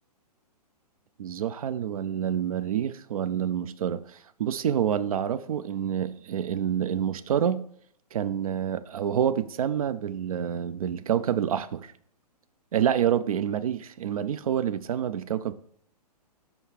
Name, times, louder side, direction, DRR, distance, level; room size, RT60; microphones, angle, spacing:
voice 1, 1.2-4.0 4.4-7.6 8.1-11.9 12.7-15.5, right 9 dB, 60° right, 0.5 m, -27 dB
5.7 x 5.5 x 4.6 m
figure-of-eight pair, 125°, 21 cm